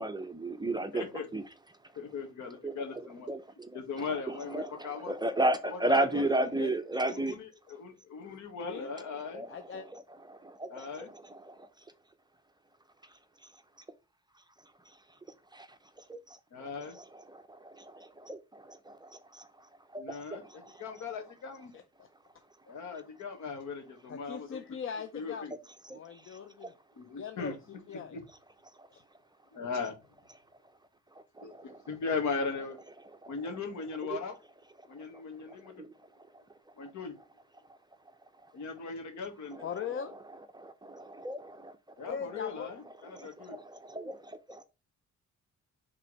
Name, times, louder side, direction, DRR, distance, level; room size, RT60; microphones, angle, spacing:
voice 1, 0.0-1.4 2.6-2.7 3.3-3.8 4.3-7.4 9.3-10.0 10.3-11.7 15.5-15.7 16.1-16.7 16.9-17.0 17.3-19.5 19.9-20.7 25.9-26.0 26.2-26.7 31.4-31.8 33.2-33.3 35.8-35.9 36.3-36.4 40.5-42.1 43.1-44.6, right 1 dB, 15° right, 0.6 m, -34 dB
voice 2, 0.9-1.3 2.0-3.3 3.7-5.2 5.6-6.3 6.6-6.7 7.0-9.5 10.7-11.1 16.5-17.0 20.0-21.7 22.7-24.6 25.1-25.5 26.9-27.5 27.9-28.2 29.5-30.0 31.4-32.8 33.3-34.3 34.9-35.8 36.8-37.1 38.5-39.7 42.0-43.6, left 5 dB, 70° left, 1.7 m, -38 dB
voice 3, 6.1-6.7 8.7-8.9 9.5-9.9 22.0-22.1 24.1-25.5 25.9-26.7 27.2-28.2 28.9-29.0 39.6-40.2 42.1-42.7, left 7 dB, 45° left, 0.6 m, -40 dB
4.9 x 3.6 x 5.4 m
cardioid pair, 90°, 30 cm